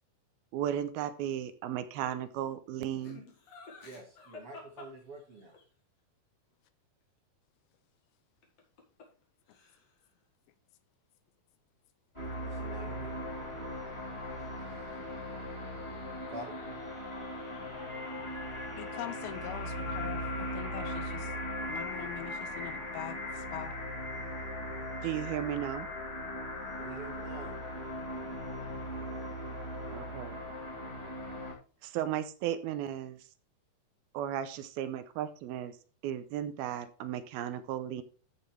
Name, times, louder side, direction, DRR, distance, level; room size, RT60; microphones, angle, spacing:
voice 1, 0.5-3.2 25.0-25.9 29.9-30.4 31.8-33.2 34.1-35.8 36.0-38.0, right 11 dB, 80° right, 2.5 m, -35 dB
Laughter, 2.9-5.6 8.4-9.2 9.5-10.0, left 3 dB, 50° left, 2.6 m, -50 dB
voice 2, 3.8-5.5 12.4-13.2 16.3-16.6 26.8-27.7, right 2 dB, 50° right, 1.8 m, -47 dB
sound 1, 12.1-31.5, left 1 dB, 10° left, 2.1 m, -39 dB
voice 3, 18.7-21.3 21.7-23.2 23.5-23.8, left 12 dB, 80° left, 2.5 m, -42 dB
14.0 x 6.1 x 3.3 m
omnidirectional pair, 4.5 m